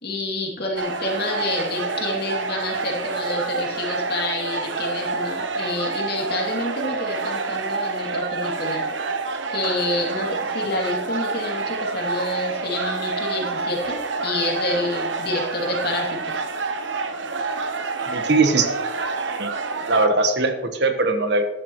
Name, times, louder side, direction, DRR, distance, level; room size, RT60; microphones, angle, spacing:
voice 1, 0.0-8.8 9.5-16.4, left 2 dB, 55° left, -1 dB, 2.6 m, -28 dB
sound 1, 0.8-20.1, right 3 dB, 80° right, 1.0 m, -27 dB
voice 2, 18.1-18.7 19.4-19.5 19.9-21.4, right 3 dB, 60° right, 7 dB, 1.2 m, -20 dB
14.0 x 11.0 x 3.1 m, 0.98 s
head